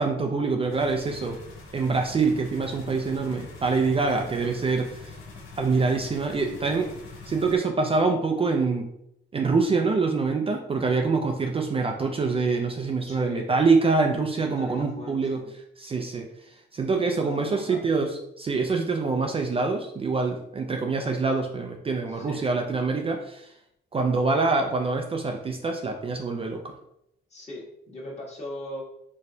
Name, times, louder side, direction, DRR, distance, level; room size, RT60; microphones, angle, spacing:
voice 1, 0.0-1.4 1.7-5.2 5.6-6.9 7.3-8.9 9.3-15.4 15.8-23.5 23.9-26.8, right 4 dB, 30° right, 3 dB, 0.4 m, -25 dB
sound 1, 0.7-7.6, left 4 dB, 85° left, 1.0 m, -44 dB
voice 2, 13.1-13.5 14.4-15.5 17.0-17.8 22.1-22.6 27.3-28.8, left 1 dB, 35° left, -3 dB, 1.5 m, -40 dB
4.2 x 3.1 x 2.7 m, 0.78 s
cardioid pair, 90°, 20 cm